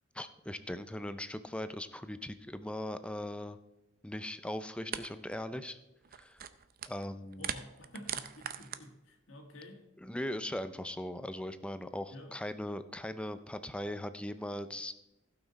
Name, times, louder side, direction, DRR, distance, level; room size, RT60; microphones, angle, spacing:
voice 1, 0.1-3.6 4.0-5.8 6.2-6.4 6.9-7.5 10.0-14.9, left 1 dB, 5° left, 0.5 m, -39 dB
sound 1, 4.3-4.4 4.9-5.1 5.3-5.6 6.0-7.1 7.3-8.8, right 9 dB, 50° right, 0.5 m, -40 dB
voice 2, 7.4-9.8 12.1-12.4, left 1 dB, 85° left, 1.9 m, -50 dB
15.5 x 6.0 x 4.1 m
head